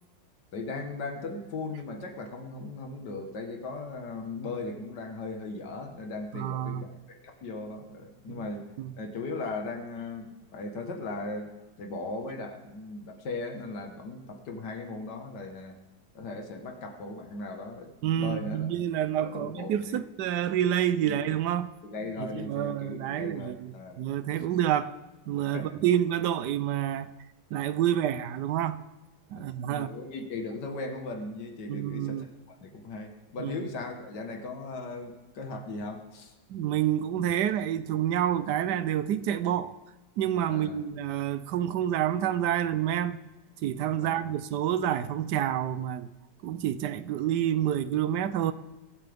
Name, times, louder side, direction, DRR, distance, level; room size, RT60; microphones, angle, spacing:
voice 1, 0.5-8.7 9.0-15.8 16.2-18.7 18.9-20.0 21.0-21.2 21.8-24.0 25.5-25.7 29.4-32.3 32.6-36.3 40.5-40.8 44.0-44.3, left 3 dB, 75° left, 2.0 m, -38 dB
voice 2, 6.3-6.8 8.3-8.4 8.8-8.9 18.0-21.7 22.2-24.9 25.3-27.1 27.5-28.8 29.3-29.9 31.7-32.2 33.4-33.5 36.5-39.7 40.2-43.2 43.6-46.1 46.4-48.5, right 10 dB, 75° right, 1.2 m, -28 dB
22.0 x 12.0 x 3.5 m
omnidirectional pair, 1.8 m